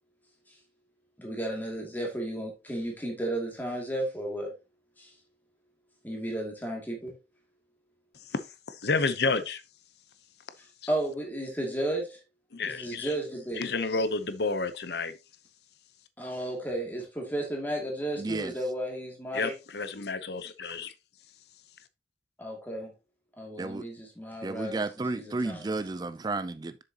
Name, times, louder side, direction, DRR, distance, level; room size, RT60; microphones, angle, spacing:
voice 1, 1.2-4.5 5.0-5.1 6.0-7.1 10.9-12.2 12.6-13.7 16.2-19.5 22.4-22.9 23.4-25.7, right 1 dB, 10° left, 2.3 m, -33 dB
voice 2, 8.8-9.6 12.5-13.1 13.6-15.1 19.3-20.9, left 3 dB, 60° left, 0.7 m, -30 dB
voice 3, 18.2-18.5 23.6-23.9 24.4-26.8, right 3 dB, 20° right, 0.3 m, -32 dB
7.7 x 6.7 x 2.8 m
head